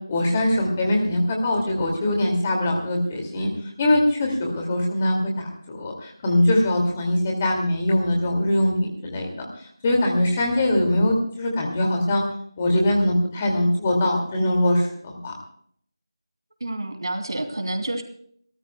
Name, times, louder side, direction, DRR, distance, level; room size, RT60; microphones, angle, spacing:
voice 1, 0.1-3.5 3.8-9.5 9.8-12.2 12.6-15.3, left 1 dB, 20° left, 1 dB, 2.4 m, -22 dB
voice 2, 16.6-18.0, right 1 dB, 60° right, 7 dB, 2.8 m, -28 dB
28.0 x 13.5 x 2.3 m, 0.62 s
figure-of-eight pair, 175°, 3 cm